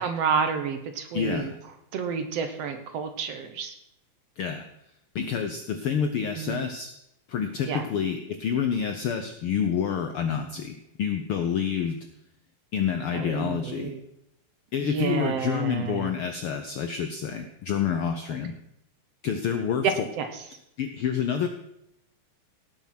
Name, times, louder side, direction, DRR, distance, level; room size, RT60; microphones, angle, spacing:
voice 1, 0.0-1.5 1.9-3.7 6.4-6.7 7.7-7.9 13.1-14.0 14.8-16.1 19.8-20.3, right 6 dB, 65° right, 8 dB, 1.8 m, -29 dB
voice 2, 1.1-1.6 4.4-4.7 5.1-6.9 7.3-12.0 12.7-13.9 14.7-18.5 19.2-20.1 20.8-21.5, left 7 dB, 75° left, 7 dB, 1.3 m, -28 dB
17.5 x 7.3 x 5.9 m, 0.81 s
omnidirectional pair, 3.5 m